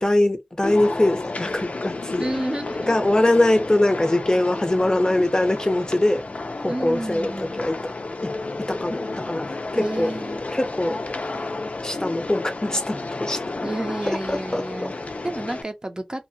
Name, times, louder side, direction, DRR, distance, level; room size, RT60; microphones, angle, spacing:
voice 1, 0.0-2.3 2.9-6.2 6.6-7.8 8.2-8.3 8.6-10.1 10.5-11.0 11.8-13.7 14.1-14.9, left 1 dB, 35° left, 0.6 m, -22 dB
sound 1, 0.6-15.6, left 3 dB, 85° left, 0.4 m, -31 dB
voice 2, 2.2-3.0 6.7-7.5 9.7-10.4 13.6-16.3, right 1 dB, 35° right, 0.6 m, -31 dB
2.7 x 2.2 x 2.6 m
wide cardioid pair, 55°, 2 cm